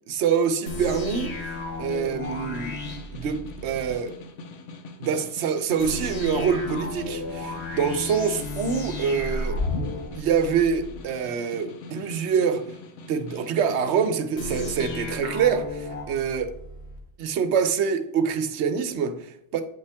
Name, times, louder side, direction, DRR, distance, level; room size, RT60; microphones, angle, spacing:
voice 1, 0.1-2.8 3.1-4.1 5.0-9.6 10.2-12.6 13.1-16.6 17.2-19.6, right 6 dB, 70° right, 1.0 m, -25 dB
sound 1, 0.7-3.9 5.8-11.0 14.4-17.0, left 2 dB, 65° left, 1.3 m, -33 dB
Snare drum, 1.4-14.2, left 3 dB, 85° left, 1.1 m, -44 dB
8.5 x 5.5 x 3.4 m
omnidirectional pair, 1.2 m